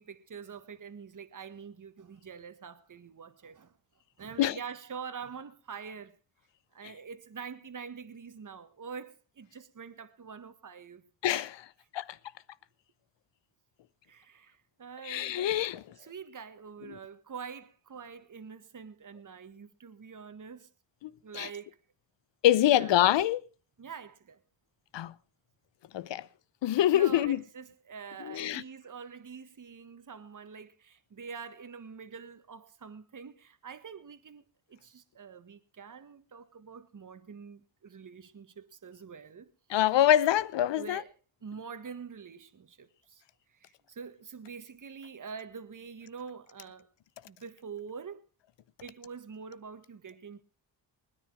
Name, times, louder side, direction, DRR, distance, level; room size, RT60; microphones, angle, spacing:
voice 1, 0.0-3.7 4.2-6.2 6.7-11.0 14.1-15.6 16.0-20.7 21.2-21.8 22.7-22.9 23.8-24.4 26.9-34.4 34.7-39.5 40.7-41.1 41.4-43.2 43.5-46.9 47.3-48.2 48.8-50.4, right 6 dB, 40° right, 1.6 m, -45 dB
voice 2, 11.2-11.7 11.9-12.2 15.0-15.8 16.9-17.0 21.0-21.5 22.4-23.4 24.9-25.1 25.9-26.3 26.6-27.4 28.2-28.6 39.7-41.0, left 12 dB, 65° left, 0.8 m, -25 dB
20.5 x 9.9 x 4.6 m
supercardioid pair, 60°, 46 cm